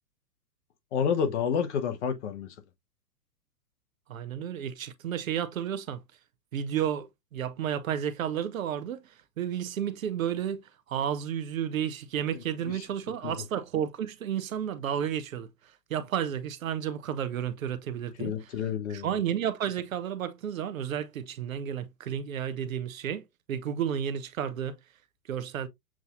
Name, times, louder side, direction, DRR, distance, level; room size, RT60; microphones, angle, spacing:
voice 1, 0.9-2.5 13.2-13.3 18.2-19.1, left 7 dB, 45° left, 1.0 m, -29 dB
voice 2, 4.1-6.0 6.5-15.5 15.9-18.3 18.9-23.2 23.5-24.8 25.3-25.7, right 9 dB, 55° right, 0.7 m, -32 dB
7.4 x 2.6 x 2.3 m
figure-of-eight pair, 110°, 50 cm